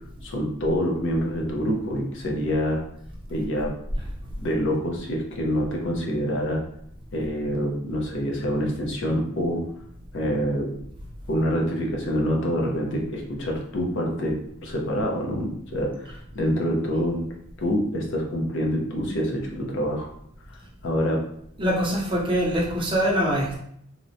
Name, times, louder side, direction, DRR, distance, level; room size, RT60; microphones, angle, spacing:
voice 1, 0.2-2.8 3.3-3.7 4.4-6.6 7.1-9.6 10.1-10.7 11.3-17.2 17.6-20.1 20.5-21.2, equal, 60° left, 0 dB, 0.6 m, -26 dB
voice 2, 21.6-23.6, equal, 25° right, -2 dB, 0.5 m, -24 dB
2.9 x 2.1 x 2.6 m, 0.70 s
head